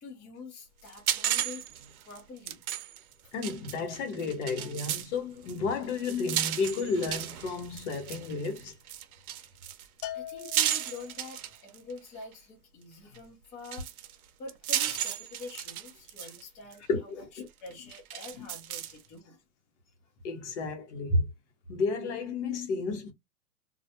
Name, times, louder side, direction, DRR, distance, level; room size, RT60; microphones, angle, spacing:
voice 1, 0.0-1.6 2.0-2.6 4.6-4.7 10.1-13.9 14.4-16.8 17.6-19.4, left 3 dB, 15° left, 0.5 m, -46 dB
sound 1, 0.9-5.1 5.5-12.0 13.1-13.2 13.6-16.4 16.7-16.8 17.7-19.0, right 11 dB, 75° right, 0.7 m, -34 dB
voice 2, 3.3-8.7 16.9-17.5 18.4-18.5 20.2-21.3 21.7-23.1, left 3 dB, 50° left, 0.9 m, -32 dB
Bell, 10.0-11.4, left 12 dB, 80° left, 0.6 m, -41 dB
2.4 x 2.1 x 2.8 m
hypercardioid pair, 145°, 44 cm